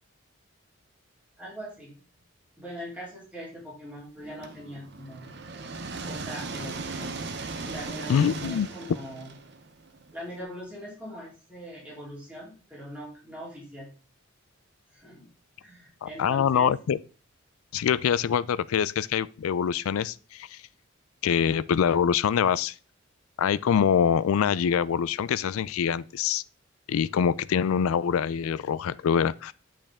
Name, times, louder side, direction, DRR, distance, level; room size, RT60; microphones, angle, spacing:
voice 1, 1.4-1.9 2.6-5.4 6.0-7.1 7.6-9.3 10.1-13.9 14.9-15.3 15.6-16.7, equal, 5° right, 3.3 m, -41 dB
sound 1, 4.4-10.3, right 3 dB, 55° right, 0.8 m, -38 dB
voice 2, 8.1-8.7 16.0-17.0 17.7-20.6 21.2-22.7 23.4-26.4 26.9-29.5, left 7 dB, 85° left, 0.4 m, -24 dB
8.8 x 5.2 x 3.5 m
head